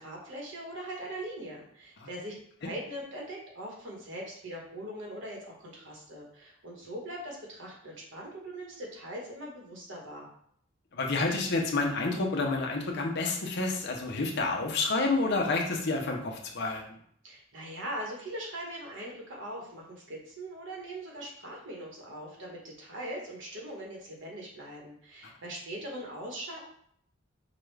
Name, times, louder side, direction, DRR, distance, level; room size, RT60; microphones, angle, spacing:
voice 1, 0.0-2.3 2.6-10.3 17.2-26.6, right 1 dB, 70° right, -2 dB, 1.2 m, -41 dB
voice 2, 10.9-16.8, left 3 dB, 60° left, 1 dB, 0.7 m, -29 dB
4.9 x 2.3 x 3.3 m, 0.66 s
head